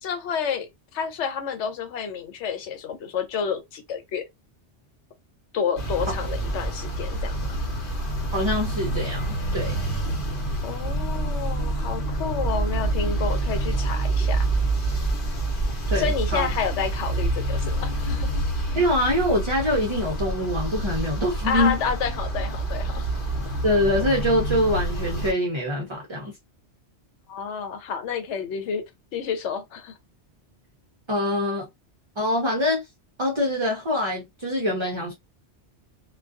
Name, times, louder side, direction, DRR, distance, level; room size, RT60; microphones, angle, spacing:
voice 1, 0.0-4.2 5.5-7.6 10.6-14.5 16.0-18.3 21.4-23.1 27.3-28.8 29.1-30.0, left 6 dB, 85° left, 0.9 m, -30 dB
sound 1, 5.8-25.3, right 2 dB, 50° left, 1.0 m, -27 dB
voice 2, 8.3-9.8 15.9-16.5 18.8-21.8 23.6-26.3 31.1-31.7 32.2-32.9 33.2-35.1, left 1 dB, 35° right, 0.4 m, -24 dB
2.4 x 2.2 x 2.3 m
omnidirectional pair, 1.2 m